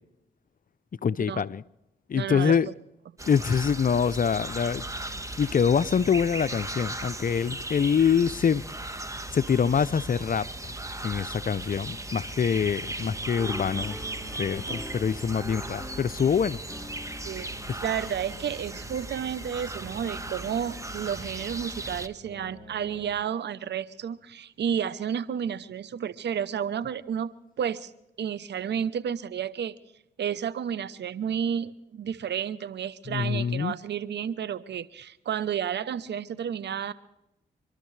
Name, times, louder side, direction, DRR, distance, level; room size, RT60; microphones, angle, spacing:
voice 1, 1.0-1.6 2.1-2.7 3.3-4.8 5.4-8.6 9.3-10.7 11.0-14.0 14.4-16.6 17.7-17.8 33.1-33.7, left 7 dB, 50° left, 0.6 m, -25 dB
voice 2, 2.1-2.7 17.2-17.5 17.8-27.3 27.6-27.9 28.2-29.7 30.2-36.9, right 8 dB, 70° right, 0.8 m, -31 dB
sound 1, 3.2-22.1, right 2 dB, 15° right, 1.4 m, -37 dB
sound 2, 13.0-23.1, right 2 dB, 45° right, 3.2 m, -50 dB
sound 3, 13.4-18.9, left 2 dB, 5° left, 1.0 m, -45 dB
26.0 x 12.5 x 3.3 m
supercardioid pair, 45°, 19 cm